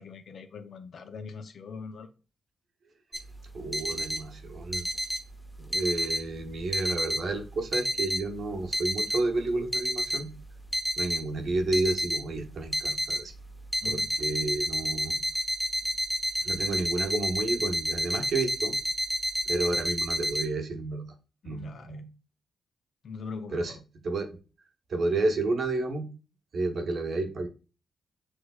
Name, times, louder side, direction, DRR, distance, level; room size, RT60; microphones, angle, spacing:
voice 1, 0.0-2.1 13.8-14.1 21.4-22.0 23.0-23.8, left 5 dB, 65° left, 0.5 m, -42 dB
sound 1, 3.1-20.4, equal, ahead, 0.8 m, -30 dB
voice 2, 3.5-4.9 5.6-10.3 11.0-13.3 13.8-15.2 16.4-18.8 19.5-21.0 21.4-22.0 23.5-23.8 24.0-24.4 24.9-26.1 26.5-27.5, right 2 dB, 65° right, 0.8 m, -31 dB
6.0 x 3.2 x 2.3 m
cardioid pair, 70°, 0 cm